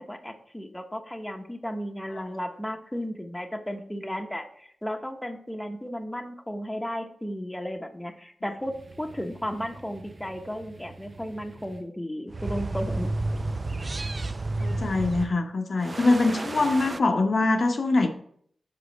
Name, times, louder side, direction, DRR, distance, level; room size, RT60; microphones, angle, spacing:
voice 1, 0.0-13.1, equal, 10° left, 4 dB, 0.9 m, -34 dB
sound 1, 8.7-11.8 12.3-15.3 15.8-17.0, right 2 dB, 40° right, 0.4 m, -33 dB
voice 2, 14.6-18.1, left 2 dB, 60° left, 4 dB, 0.7 m, -23 dB
6.7 x 5.1 x 4.0 m, 0.64 s
cardioid pair, 65°, 0 cm